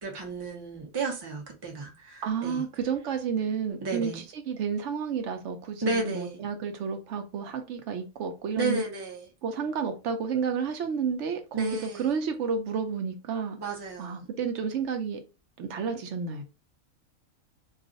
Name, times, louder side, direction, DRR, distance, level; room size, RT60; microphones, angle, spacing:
voice 1, 0.0-2.6 3.8-4.2 5.8-6.4 8.6-9.3 11.5-12.1 13.6-14.3, right 2 dB, 25° right, 0.6 m, -33 dB
voice 2, 2.2-8.8 9.4-13.6 14.0-15.2 15.6-16.4, right 6 dB, 65° right, 0.8 m, -31 dB
2.4 x 2.4 x 3.8 m
omnidirectional pair, 1.4 m